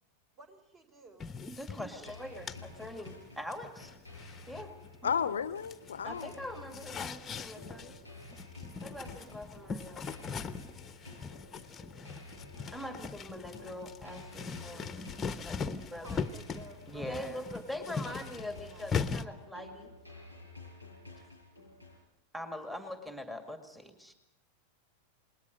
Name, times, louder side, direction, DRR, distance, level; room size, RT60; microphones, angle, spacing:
voice 1, 0.3-1.3 16.0-17.4 18.0-18.9, right 2 dB, 30° right, 6 dB, 4.6 m, -54 dB
sound 1, 1.2-5.3 5.6-19.2, left 5 dB, 20° left, 1.1 m, -40 dB
voice 2, 1.6-4.0 4.5-4.7 5.0-5.2 6.0-8.0 8.8-10.1 12.7-15.1 15.4-16.2 16.9-19.9 22.3-24.1, left 1 dB, 5° right, 5 dB, 2.2 m, -43 dB
sound 2, 2.1-22.1, left 2 dB, 85° right, 7.3 m, -52 dB
voice 3, 5.0-6.3, left 7 dB, 65° left, 16 dB, 0.8 m, -32 dB
28.5 x 21.0 x 5.2 m, 0.84 s
figure-of-eight pair, 90°, 0 cm